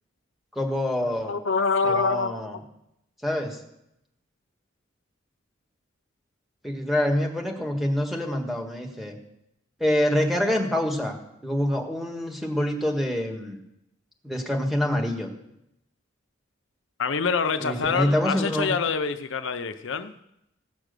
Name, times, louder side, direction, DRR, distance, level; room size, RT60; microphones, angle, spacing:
voice 1, 0.5-1.3 1.8-2.6 3.2-3.6 6.6-9.2 9.8-11.1 11.4-13.6 14.2-15.3 17.6-18.7, left 1 dB, ahead, 0 dB, 1.6 m, -26 dB
voice 2, 1.3-2.6 17.0-20.1, left 5 dB, 75° left, 10 dB, 0.6 m, -26 dB
16.5 x 6.1 x 6.7 m, 0.82 s
head